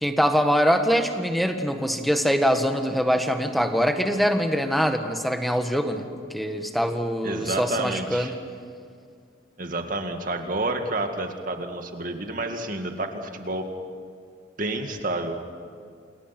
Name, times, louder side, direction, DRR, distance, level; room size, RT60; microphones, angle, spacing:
voice 1, 0.0-6.1 6.3-8.4, equal, ahead, 6 dB, 1.6 m, -23 dB
voice 2, 7.2-8.3 9.6-13.6 14.6-15.4, right 2 dB, 45° right, 5 dB, 2.2 m, -29 dB
29.0 x 28.0 x 6.1 m, 2.3 s
head